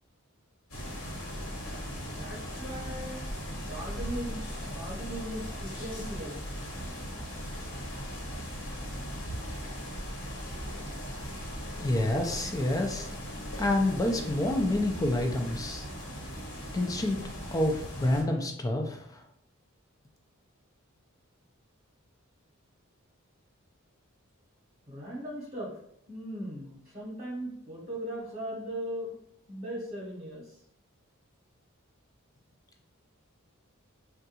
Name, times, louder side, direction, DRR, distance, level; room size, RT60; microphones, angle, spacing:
sound 1, 0.7-18.2, equal, 80° left, 1.1 m, -38 dB
voice 1, 2.0-3.2 3.5-6.4 24.9-25.7 26.1-29.1 29.5-30.5, right 1 dB, 25° right, -6 dB, 0.9 m, -38 dB
voice 2, 11.8-13.1 13.6-15.9 16.7-17.2 17.5-19.2, left 1 dB, 15° left, 3 dB, 0.3 m, -28 dB
3.7 x 2.3 x 2.8 m, 0.73 s
head